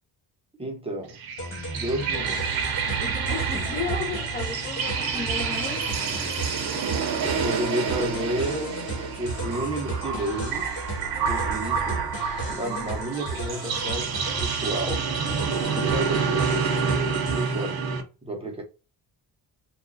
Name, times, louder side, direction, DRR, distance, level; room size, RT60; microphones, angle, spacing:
voice 1, 0.6-1.2 1.7-2.8 7.2-10.7 11.2-12.1 12.5-15.1 15.7-18.6, right 1 dB, 15° right, 0.8 m, -32 dB
sound 1, 1.1-18.0, right 6 dB, 60° right, 0.8 m, -28 dB
sound 2, 1.4-17.7, right 2 dB, 85° left, 1.6 m, -35 dB
voice 2, 3.0-6.3 12.4-12.9, left 5 dB, 20° left, 0.5 m, -35 dB
2.9 x 2.4 x 3.9 m
wide cardioid pair, 160°, 42 cm